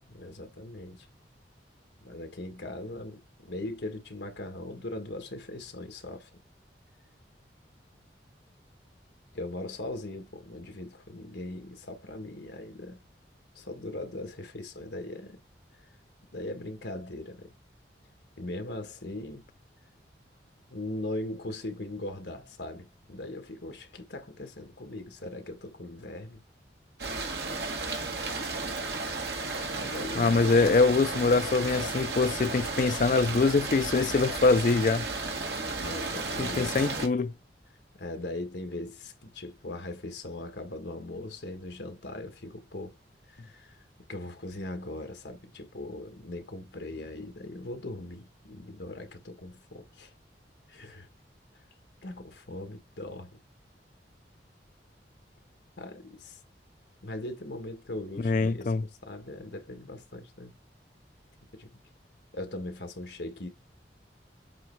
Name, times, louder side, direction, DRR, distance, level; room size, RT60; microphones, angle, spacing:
voice 1, 0.1-1.1 2.0-6.4 9.3-13.0 13.5-15.4 16.3-17.5 18.4-19.4 20.7-26.4 29.7-30.4 35.8-36.8 37.9-42.9 43.3-43.8 44.1-50.1 50.7-51.1 51.5-51.6 52.0-53.4 55.8-56.4 57.0-60.5 61.5-61.8 62.3-63.5, left 1 dB, 70° left, 1.5 m, -40 dB
sound 1, 27.0-37.1, right 3 dB, 65° right, 1.8 m, -33 dB
voice 2, 30.2-35.1 36.4-37.3 58.2-58.8, left 3 dB, 45° left, 0.4 m, -24 dB
7.7 x 3.2 x 4.6 m
head